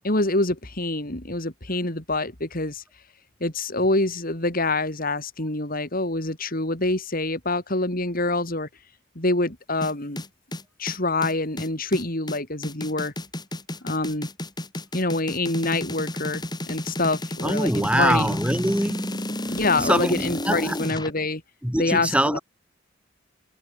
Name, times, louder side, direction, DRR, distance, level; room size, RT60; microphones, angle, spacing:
voice 1, 0.0-2.8 3.4-8.7 9.2-10.2 10.8-13.1 13.8-14.3 14.9-18.3 19.5-21.4 21.8-22.4, left 2 dB, 45° left, 3.6 m, -26 dB
sound 1, 9.8-21.1, left 1 dB, 20° left, 6.1 m, -32 dB
voice 2, 17.4-19.2 19.5-20.8 21.6-22.4, right 1 dB, 5° right, 4.7 m, -24 dB
head